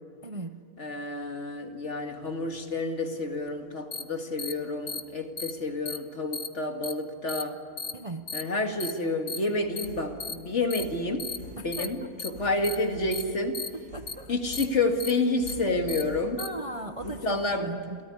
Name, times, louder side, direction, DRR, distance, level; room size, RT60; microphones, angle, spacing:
voice 1, 0.2-0.6 7.9-8.2 11.6-12.1 13.7-14.4 16.4-17.4 17.6-18.0, right 2 dB, 30° right, 6 dB, 0.7 m, -38 dB
voice 2, 0.8-7.6 8.3-11.3 11.6-13.6 14.3-16.4 17.0-17.7, left 2 dB, 50° left, 4 dB, 2.3 m, -29 dB
sound 1, 1.2-17.4, left 1 dB, 60° right, 7.6 m, -50 dB
sound 2, 3.9-4.0 4.4-4.5 4.9-5.0 5.4-5.5 5.9-6.0 6.3-6.5 6.8-6.9 7.3-7.4 7.8-7.9 8.3-8.4 8.8-8.9 9.3-9.4 9.8-9.9 10.2-10.3 10.7-10.8 11.2-11.4 11.7-11.9 12.2-12.3 12.6-12.8 13.1-13.2 13.5-13.7 14.1-14.2 14.5-14.6 15.0-15.1 15.5-15.6 15.9-16.0 16.4-16.5, left 4 dB, 75° left, 2.0 m, -34 dB
28.0 x 18.5 x 9.8 m, 2.2 s
omnidirectional pair, 1.6 m